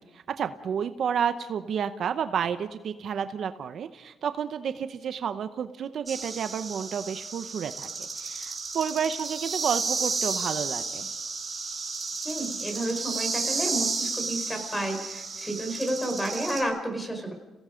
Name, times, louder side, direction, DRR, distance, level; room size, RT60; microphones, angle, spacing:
voice 1, 0.4-11.1, right 7 dB, 60° right, 10 dB, 0.8 m, -31 dB
sound 1, 6.1-16.6, right 4 dB, 25° right, 6.2 m, -32 dB
voice 2, 12.2-17.3, right 1 dB, 10° left, 5 dB, 4.8 m, -31 dB
30.0 x 17.5 x 5.2 m, 1.2 s
cardioid pair, 105°, 0 cm